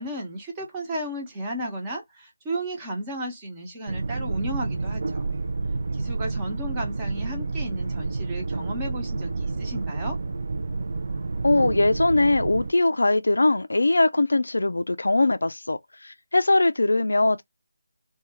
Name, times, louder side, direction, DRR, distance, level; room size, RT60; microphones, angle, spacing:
voice 1, 0.0-5.3 6.0-10.2, right 1 dB, 15° right, 0.8 m, -34 dB
sound 1, 3.9-12.7, right 3 dB, 50° right, 0.4 m, -29 dB
voice 2, 11.4-17.4, left 2 dB, 65° left, 0.3 m, -21 dB
2.4 x 2.3 x 3.0 m
figure-of-eight pair, 160°, 0 cm